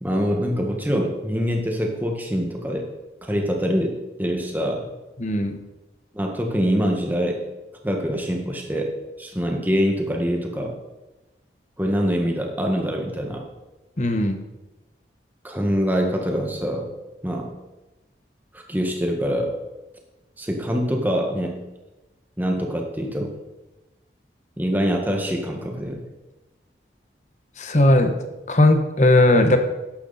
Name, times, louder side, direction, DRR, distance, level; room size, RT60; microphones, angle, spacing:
voice 1, 0.0-2.9 3.2-4.9 6.1-7.4 7.8-10.8 11.8-13.5 15.4-16.9 17.2-17.5 18.5-19.5 20.4-21.6 22.4-23.3 24.6-26.0, equal, 10° right, 2 dB, 1.6 m, -24 dB
voice 2, 5.2-5.5 14.0-14.4 27.6-28.1 28.5-29.6, left 1 dB, 40° left, 7 dB, 1.1 m, -17 dB
12.5 x 10.5 x 4.2 m, 1.1 s
head